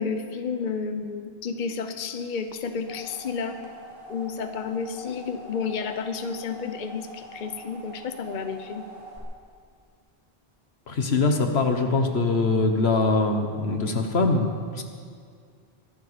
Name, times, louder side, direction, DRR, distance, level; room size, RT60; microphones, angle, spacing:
voice 1, 0.0-3.6 4.1-8.8, left 5 dB, 50° left, 8 dB, 1.0 m, -31 dB
sound 1, 2.5-9.2, right 1 dB, 55° right, 2.8 m, -44 dB
voice 2, 10.9-14.5 14.7-14.8, left 3 dB, 85° left, 5 dB, 1.6 m, -23 dB
23.0 x 11.5 x 5.1 m, 2.1 s
omnidirectional pair, 1.0 m